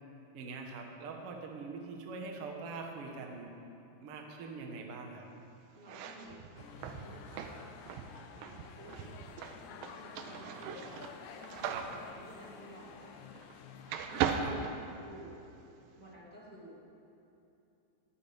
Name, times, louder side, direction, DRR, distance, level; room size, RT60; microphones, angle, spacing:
voice 1, 0.3-3.5 4.0-5.3 10.2-10.5 11.6-11.8 14.4-14.5, right 4 dB, 65° right, 1 dB, 1.4 m, -43 dB
voice 2, 5.7-7.7 8.3-9.4 9.7-13.4 14.1-15.4 16.0-16.8, right 1 dB, 25° right, -6 dB, 2.2 m, -53 dB
sound 1, 5.8-13.6 13.9-15.5, right 7 dB, 80° right, 2.1 m, -39 dB
sound 2, 6.6-14.3, left 8 dB, 85° left, 3.0 m, -52 dB
23.0 x 13.5 x 3.7 m, 2.9 s
omnidirectional pair, 5.1 m